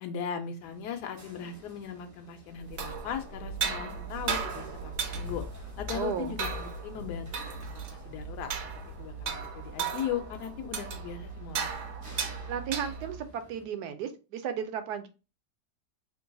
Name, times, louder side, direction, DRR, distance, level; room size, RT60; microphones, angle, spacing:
voice 1, 0.0-5.4 5.8-8.5 9.0-11.9, left 8 dB, 90° left, 5 dB, 1.2 m, -38 dB
sound 1, 0.6-13.7, right 1 dB, 20° right, 0.4 m, -54 dB
sound 2, 2.6-13.3, right 6 dB, 65° right, 1.0 m, -36 dB
sound 3, 5.1-11.1, left 13 dB, 70° left, 0.7 m, -46 dB
voice 2, 5.9-6.4 12.5-15.1, right 8 dB, 80° right, 9 dB, 1.2 m, -34 dB
3.2 x 2.2 x 3.8 m, 0.31 s
omnidirectional pair, 1.7 m